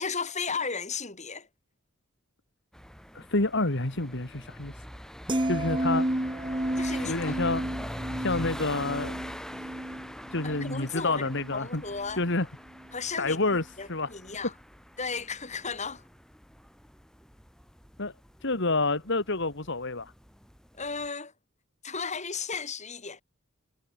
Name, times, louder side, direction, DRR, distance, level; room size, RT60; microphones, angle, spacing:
voice 1, 0.0-1.5 5.6-5.9 6.8-7.4 10.4-12.2 12.9-13.4 13.8-14.5 15.0-16.0 20.8-21.3 21.8-23.2, left 5 dB, 35° left, 4.5 m, -35 dB
sound 1, 2.7-21.1, equal, 5° left, 3.9 m, -43 dB
voice 2, 3.1-4.7 5.5-6.1 7.0-7.6 8.2-9.2 10.3-11.8 12.2-12.5 13.2-13.6 13.9-14.1 18.0-18.1 18.4-20.1, left 2 dB, 60° left, 2.3 m, -28 dB
sound 2, 5.3-11.6 11.9-12.2, right 1 dB, 25° right, 1.7 m, -32 dB
head